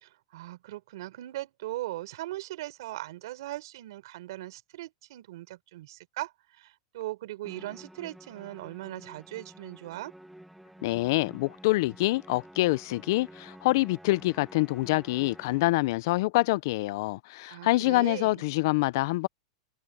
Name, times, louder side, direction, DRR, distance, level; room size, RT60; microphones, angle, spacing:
voice 1, 0.0-6.3 6.6-10.1 17.5-18.4, right 16 dB, 65° right, 3.9 m, -39 dB
Musical instrument, 7.4-16.0, right 1 dB, ahead, 1.6 m, -51 dB
voice 2, 10.8-19.3, left 20 dB, 50° left, 0.4 m, -26 dB
supercardioid pair, 165°, 3 cm